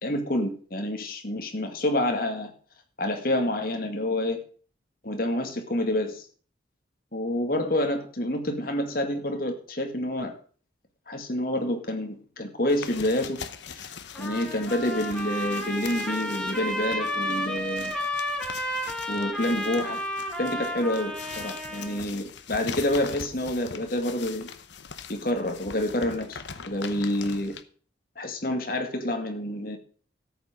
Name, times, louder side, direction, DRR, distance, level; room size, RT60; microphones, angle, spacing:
voice 1, 0.0-2.5 3.0-4.4 5.0-6.3 7.1-10.3 11.1-13.9 14.2-17.9 19.1-20.0 20.4-24.5 25.1-27.6 28.2-29.8, left 1 dB, 50° left, 4 dB, 2.1 m, -28 dB
sound 1, 12.7-27.6, left 6 dB, 75° left, 0.9 m, -42 dB
Trumpet, 14.1-22.0, equal, 5° left, 2.0 m, -32 dB
13.5 x 8.5 x 5.1 m, 0.43 s
head